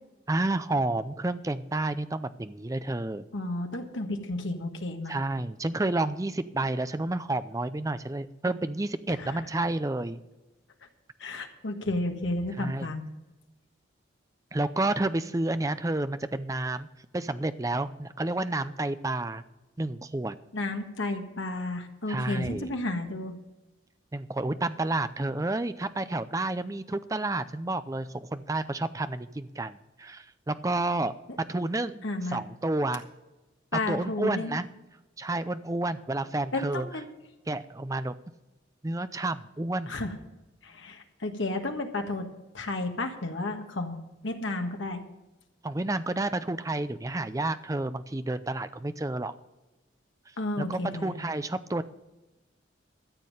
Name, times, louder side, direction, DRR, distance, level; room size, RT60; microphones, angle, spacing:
voice 1, 0.3-3.3 5.1-10.2 12.6-12.9 14.5-16.9 17.1-19.4 19.8-20.4 22.1-22.7 24.1-31.1 31.5-33.0 33.9-34.7 35.2-36.9 37.5-38.1 38.8-39.9 45.6-49.3 50.6-51.8, right 2 dB, 15° right, 12 dB, 0.4 m, -30 dB
voice 2, 3.3-5.2 9.2-9.4 11.2-13.0 20.5-23.4 31.3-31.4 32.0-32.4 33.7-34.6 36.5-37.1 39.9-40.1 40.6-42.3 42.5-44.0 44.2-45.0 50.4-51.1, left 2 dB, 80° left, 4 dB, 1.6 m, -32 dB
13.5 x 7.5 x 6.5 m, 1.1 s
head